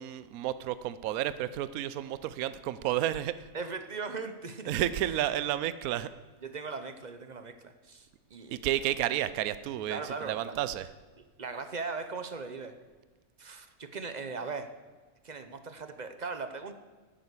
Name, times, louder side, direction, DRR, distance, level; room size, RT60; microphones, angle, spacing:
voice 1, 0.0-3.5 4.7-6.1 8.5-10.9, right 12 dB, 80° right, 14 dB, 1.0 m, -31 dB
voice 2, 3.5-4.7 6.4-8.6 9.9-10.6 11.4-12.8 13.4-14.8 15.2-16.7, right 4 dB, 40° right, 9 dB, 0.7 m, -39 dB
10.5 x 9.4 x 8.2 m, 1.4 s
omnidirectional pair, 1.5 m